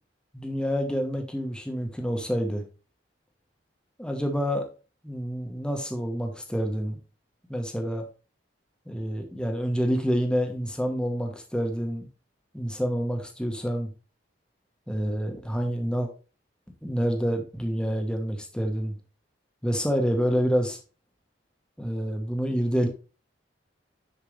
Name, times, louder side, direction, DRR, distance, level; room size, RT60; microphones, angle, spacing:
voice 1, 0.3-2.6 4.0-4.7 5.0-7.0 7.5-8.0 8.9-12.1 12.5-13.9 14.9-16.1 16.8-18.9 19.6-20.8 21.8-22.9, equal, 5° left, 4 dB, 1.2 m, -27 dB
10.0 x 4.7 x 3.3 m, 0.34 s
head